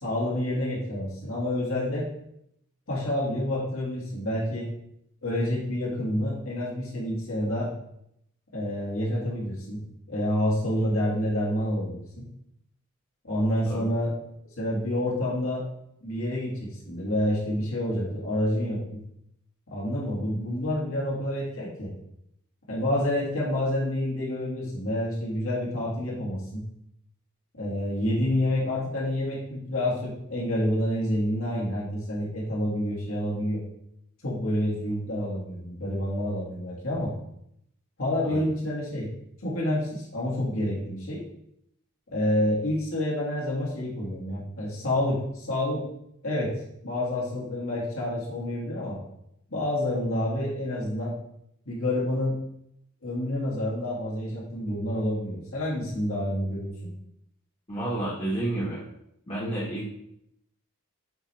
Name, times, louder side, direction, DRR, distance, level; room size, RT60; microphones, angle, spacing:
voice 1, 0.0-2.1 2.9-4.7 5.2-7.7 8.5-9.8 10.1-12.3 13.2-14.1 14.6-15.7 16.0-19.0 19.7-21.9 22.7-26.6 27.6-33.6 34.2-37.1 38.0-39.1 39.4-41.2 42.1-45.8 46.2-46.5 46.8-49.0 49.5-51.1 51.7-52.4 53.0-56.9, left 1 dB, 75° left, -5 dB, 2.1 m, -28 dB
voice 2, 57.7-58.8 59.3-59.9, right 1 dB, 30° left, -8 dB, 1.4 m, -30 dB
7.9 x 3.4 x 4.3 m, 0.76 s
head